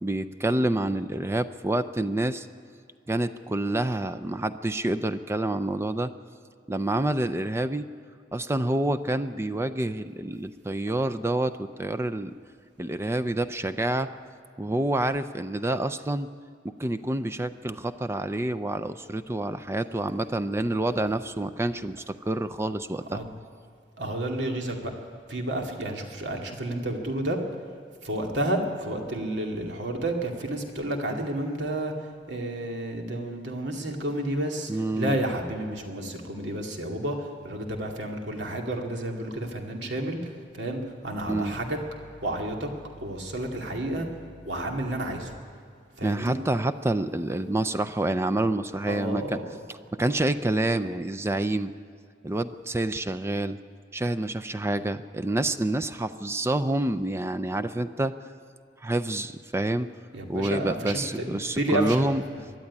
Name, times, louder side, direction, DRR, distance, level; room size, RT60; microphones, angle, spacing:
voice 1, 0.0-2.5 3.1-6.1 6.7-7.9 8.3-12.3 12.8-14.1 14.6-16.3 16.8-23.2 34.7-35.2 41.3-41.5 46.0-49.4 49.9-51.7 52.2-53.6 53.9-58.1 58.8-59.9 60.3-62.2, right 1 dB, 15° right, 10 dB, 0.4 m, -27 dB
voice 2, 24.0-24.9 25.3-27.4 28.0-45.3 45.9-46.4 48.9-49.6 60.1-62.4, right 1 dB, 80° right, 1 dB, 2.4 m, -31 dB
23.0 x 12.0 x 9.7 m, 2.1 s
head